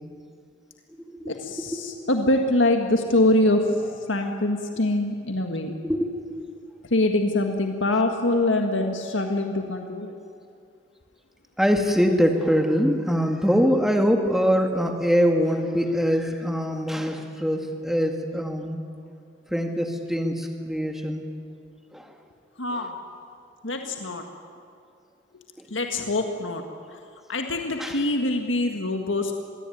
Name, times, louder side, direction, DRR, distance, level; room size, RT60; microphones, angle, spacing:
voice 1, 1.3-5.7 6.9-10.2 22.6-23.0 23.6-24.2 25.7-26.6 26.9-27.0 27.3-29.3, left 2 dB, 90° left, 4 dB, 1.8 m, -24 dB
voice 2, 11.6-18.8 19.5-21.2 21.9-22.1 22.7-22.8 25.6-25.7 27.8-28.0, equal, ahead, 4 dB, 1.9 m, -23 dB
25.5 x 22.0 x 9.3 m, 2.3 s
head